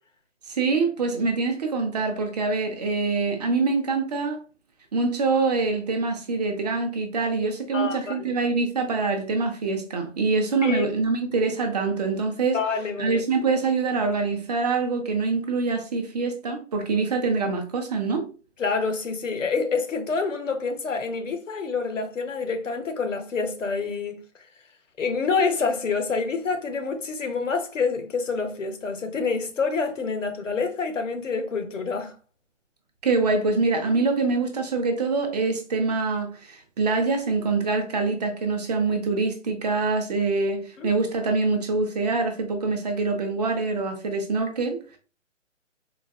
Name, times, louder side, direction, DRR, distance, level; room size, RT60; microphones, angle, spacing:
voice 1, 0.5-4.4 4.9-12.6 13.0-18.3 33.0-45.0, right 4 dB, 35° right, 0.5 m, -25 dB
voice 2, 7.7-8.3 10.6-10.9 12.5-13.2 18.6-24.2 25.0-32.1 40.8-40.9, left 4 dB, 85° left, 0.8 m, -27 dB
4.0 x 2.2 x 2.2 m
figure-of-eight pair, 140°, 37 cm